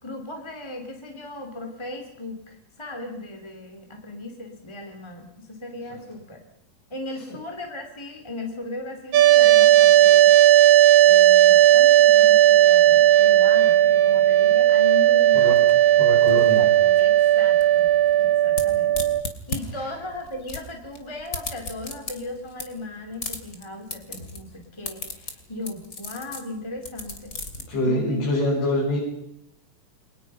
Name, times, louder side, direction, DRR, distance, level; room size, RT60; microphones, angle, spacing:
voice 1, 0.0-6.4 6.9-10.3 11.0-15.6 17.0-17.9 18.2-19.0 19.5-27.3 27.7-28.3, left 2 dB, 10° left, 3 dB, 1.8 m, -37 dB
sound 1, 9.1-19.2, right 12 dB, 80° right, 1.7 m, -15 dB
sound 2, 15.1-27.6, left 3 dB, 25° left, 2.3 m, -36 dB
voice 2, 16.0-16.7 19.8-19.9 27.7-29.0, left 1 dB, 70° left, -4 dB, 9.3 m, -25 dB
30.0 x 24.0 x 5.6 m, 0.75 s
omnidirectional pair, 5.5 m